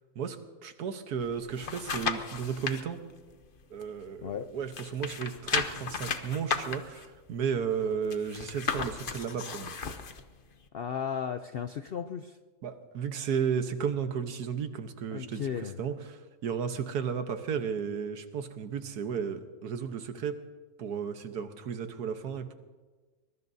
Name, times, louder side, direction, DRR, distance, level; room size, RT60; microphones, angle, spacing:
voice 1, 0.6-3.0 3.7-9.8 12.6-15.4 15.8-20.4 20.8-22.5, right 7 dB, 85° right, 8 dB, 1.6 m, -33 dB
sound 1, 1.2-2.8 3.3-4.4 4.7-10.2 10.7-10.8, left 5 dB, 40° left, 0.9 m, -35 dB
voice 2, 10.7-12.4 15.1-15.8, left 7 dB, 70° left, 8 dB, 0.5 m, -35 dB
23.5 x 21.5 x 2.7 m, 1.3 s
omnidirectional pair, 1.6 m